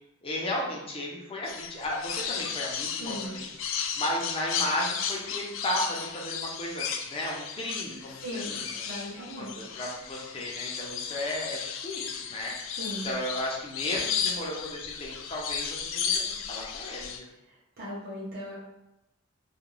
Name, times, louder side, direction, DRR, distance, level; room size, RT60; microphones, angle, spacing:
voice 1, 0.2-8.8 9.4-12.8 13.0-17.3, left 1 dB, 30° left, -3 dB, 0.6 m, -34 dB
sound 1, 1.4-17.2, left 7 dB, 75° left, 0.3 m, -34 dB
voice 2, 3.0-3.4 8.2-9.5 12.8-13.1 17.8-18.6, equal, 50° right, -8 dB, 0.6 m, -38 dB
2.4 x 2.2 x 3.0 m, 0.90 s
head